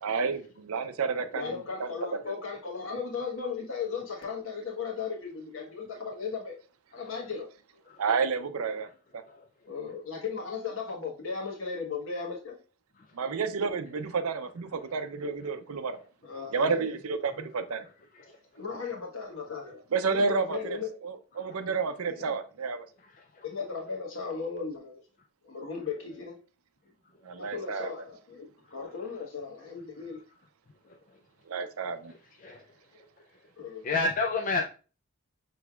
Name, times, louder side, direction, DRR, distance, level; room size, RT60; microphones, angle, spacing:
voice 1, 0.0-2.4 8.0-8.9 13.2-16.0 16.5-17.9 19.9-22.9 27.3-28.1 31.5-32.1, right 5 dB, 80° right, 0.5 m, -30 dB
voice 2, 1.3-6.6 6.9-7.5 9.7-12.6 16.2-17.0 17.3-17.5 18.6-19.8 20.1-21.0 22.1-22.4 23.4-25.0 25.4-26.4 27.4-30.2 33.6-33.9, left 5 dB, 65° left, 1.2 m, -36 dB
voice 3, 33.8-34.6, left 3 dB, 35° left, 0.3 m, -31 dB
6.0 x 3.3 x 2.3 m
head